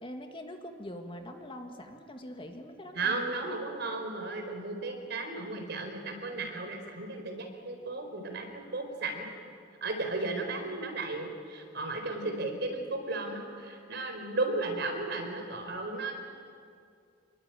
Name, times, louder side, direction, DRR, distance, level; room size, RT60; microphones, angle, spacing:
voice 1, 0.0-3.3, left 1 dB, 25° left, 4 dB, 1.9 m, -43 dB
voice 2, 2.9-9.3 9.8-16.1, right 3 dB, 60° right, 4 dB, 4.5 m, -34 dB
26.5 x 22.0 x 9.1 m, 2.3 s
head